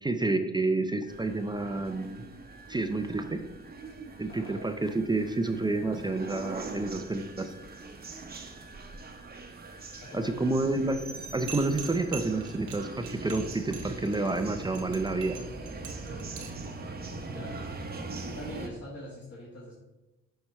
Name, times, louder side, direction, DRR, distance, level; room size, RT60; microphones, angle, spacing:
voice 1, 0.0-2.3 2.7-3.4 4.2-7.5 10.1-11.0 11.3-15.4, right 2 dB, 15° right, 7 dB, 0.5 m, -29 dB
sound 1, 1.1-18.7, right 3 dB, 30° right, 0.9 m, -42 dB
voice 2, 4.3-4.6 10.0-10.4 16.0-16.4 17.0-17.6 18.3-19.7, left 1 dB, 40° left, -5 dB, 1.9 m, -44 dB
sound 2, 11.5-16.7, right 7 dB, 80° right, 1.2 m, -43 dB
6.7 x 4.5 x 4.3 m, 1.1 s
cardioid pair, 90°, 30 cm